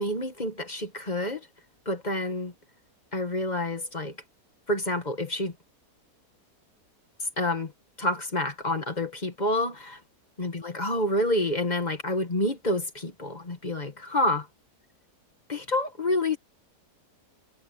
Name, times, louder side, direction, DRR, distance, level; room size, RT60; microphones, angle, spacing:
voice 1, 0.0-1.5 1.8-2.5 3.1-4.1 4.7-5.5 7.2-7.7 8.0-10.0 10.4-14.5 15.5-16.4, left 1 dB, 25° left, 1.7 m, -28 dB
omnidirectional pair, 1.7 m